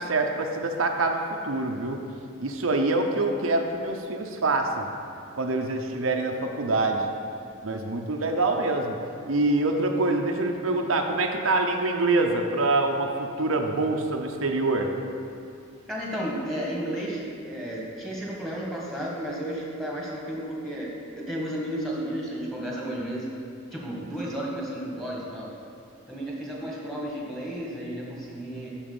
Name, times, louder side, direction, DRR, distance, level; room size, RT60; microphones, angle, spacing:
voice 1, 0.0-2.0 2.4-4.9 5.3-7.1 7.6-9.0 9.3-14.9, right 2 dB, 90° right, 3 dB, 0.8 m, -25 dB
voice 2, 15.9-20.9 21.2-23.3 23.7-25.5 26.1-28.7, equal, ahead, -4 dB, 1.6 m, -33 dB
7.2 x 6.3 x 7.0 m, 2.5 s
head